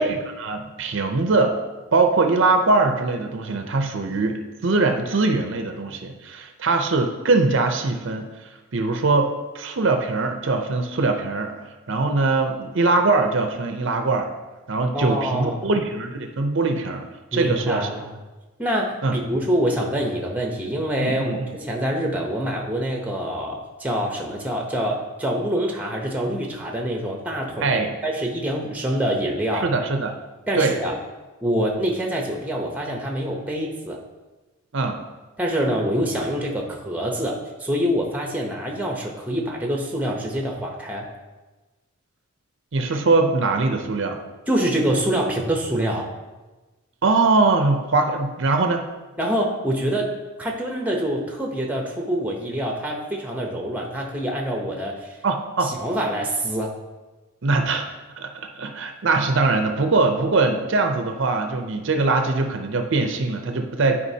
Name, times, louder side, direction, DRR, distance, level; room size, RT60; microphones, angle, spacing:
voice 1, 0.0-1.6 1.9-11.6 11.9-14.3 14.7-17.1 17.3-17.9 19.0-19.2 21.0-21.6 27.6-28.0 29.6-30.1 30.6-30.7 34.7-35.0 42.7-44.2 47.0-48.8 55.2-55.7 57.4-64.1, right 3 dB, 55° right, 5 dB, 0.6 m, -22 dB
voice 2, 14.9-15.6 17.3-18.2 18.6-29.7 30.5-30.9 31.4-34.0 35.4-41.1 44.5-46.1 49.2-50.1 50.4-55.2 55.6-56.7, equal, 5° right, 1 dB, 0.7 m, -25 dB
11.0 x 4.8 x 2.8 m, 1.2 s
head